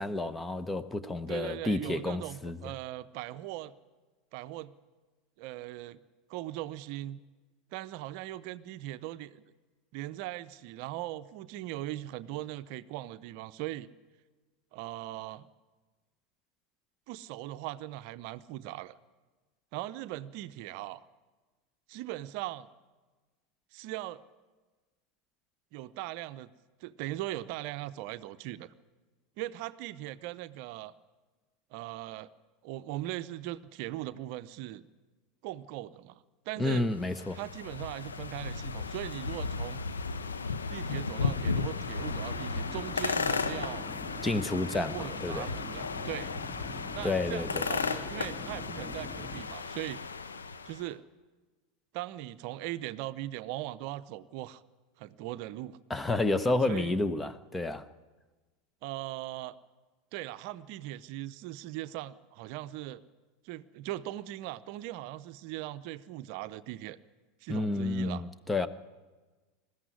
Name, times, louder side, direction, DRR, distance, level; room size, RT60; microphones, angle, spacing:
voice 1, 0.0-2.6 36.6-37.4 44.2-45.5 47.0-47.7 55.9-57.9 67.5-68.7, left 2 dB, 10° left, 1.0 m, -30 dB
voice 2, 1.3-3.7 4.3-4.7 5.4-6.0 6.3-7.2 7.7-9.4 9.9-13.9 14.7-15.5 17.1-19.0 19.7-21.0 21.9-22.7 23.7-24.2 25.7-26.5 26.8-28.7 29.4-30.9 31.7-32.3 32.6-34.9 35.4-36.9 37.3-39.8 40.7-43.8 44.7-46.3 46.9-50.0 50.7-51.1 51.9-54.6 55.0-55.8 56.7-57.0 58.8-59.6 60.1-63.0 63.4-67.0 67.4-68.2, right 15 dB, 55° right, 0.7 m, -39 dB
sound 1, 36.8-50.8, left 4 dB, 80° left, 1.0 m, -35 dB
sound 2, 42.0-49.4, left 2 dB, 35° left, 3.5 m, -43 dB
20.5 x 14.5 x 9.6 m
figure-of-eight pair, 85°, 0 cm